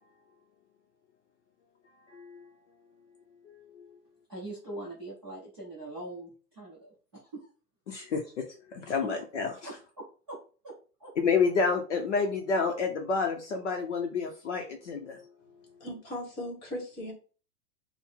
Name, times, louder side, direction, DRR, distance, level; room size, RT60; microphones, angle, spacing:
voice 1, 2.1-2.5 3.4-3.9 7.9-9.5 11.2-15.2, left 5 dB, 50° left, 0.6 m, -29 dB
voice 2, 4.3-7.5 8.2-8.3 9.0-9.1 9.6-10.4 10.6-10.7 11.0-11.1, right 2 dB, 15° right, 0.5 m, -42 dB
voice 3, 15.8-17.1, left 1 dB, 25° left, 1.2 m, -37 dB
3.6 x 2.1 x 4.3 m
hypercardioid pair, 175°, 47 cm